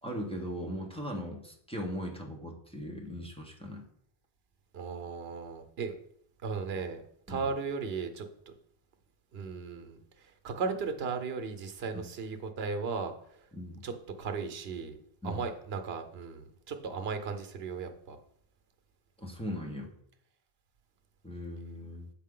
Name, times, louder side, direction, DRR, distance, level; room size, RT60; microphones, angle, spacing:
voice 1, 0.0-3.9 7.3-7.5 11.9-12.0 13.5-13.8 15.2-15.5 19.2-19.9 21.2-22.1, equal, 5° left, 0 dB, 0.9 m, -39 dB
voice 2, 4.7-5.9 6.4-7.0 7.3-8.5 9.3-13.5 13.8-13.9 14.2-15.0 15.2-18.2, right 5 dB, 80° right, 7 dB, 1.0 m, -36 dB
7.3 x 4.7 x 3.7 m, 0.69 s
omnidirectional pair, 1.0 m